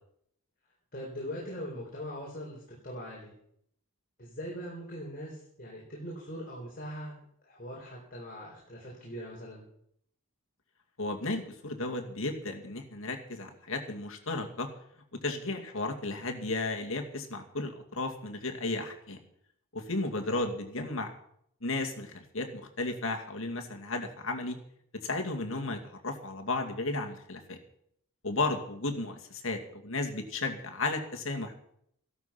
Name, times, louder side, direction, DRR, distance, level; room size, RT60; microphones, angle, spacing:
voice 1, 0.9-3.3 4.2-7.2 7.4-9.6, equal, 40° left, -3 dB, 4.2 m, -41 dB
voice 2, 11.0-14.7 15.1-19.2 19.7-21.1 21.6-24.6 25.0-27.6 28.2-31.6, left 2 dB, 60° left, 4 dB, 2.3 m, -34 dB
15.5 x 12.5 x 5.9 m, 0.70 s
head